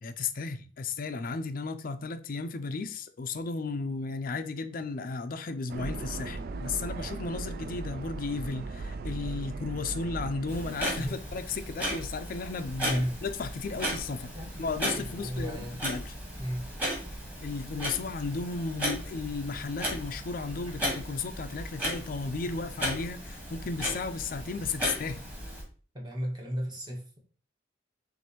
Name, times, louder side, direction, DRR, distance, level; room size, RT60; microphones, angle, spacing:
voice 1, 0.0-14.3 14.6-16.0 17.4-25.2, left 4 dB, 50° left, 0.4 m, -34 dB
sound 1, 5.7-10.8, right 3 dB, 55° right, 0.3 m, -37 dB
Clock, 10.5-25.6, equal, 10° right, 1.4 m, -36 dB
voice 2, 12.8-13.2 14.1-15.8 16.4-16.7 25.9-27.2, equal, 25° right, 1.1 m, -35 dB
6.0 x 2.6 x 3.0 m
head